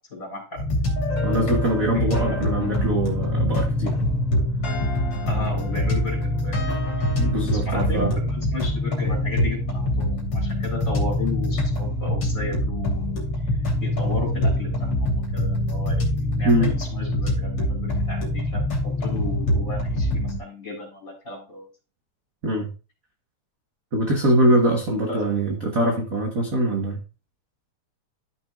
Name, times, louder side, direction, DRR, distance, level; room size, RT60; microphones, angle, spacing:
voice 1, 0.1-0.6 1.9-2.0 2.3-2.5 5.2-7.1 7.5-13.1 13.8-21.7 25.1-25.3, left 2 dB, 25° left, 4.6 m, -35 dB
sound 1, 0.6-20.4, left 1 dB, 50° left, 3.6 m, -24 dB
voice 2, 1.2-4.0 7.2-8.2 16.4-16.7 22.4-22.7 23.9-27.0, right 1 dB, 45° right, 1.2 m, -23 dB
13.5 x 6.3 x 2.4 m
omnidirectional pair, 3.3 m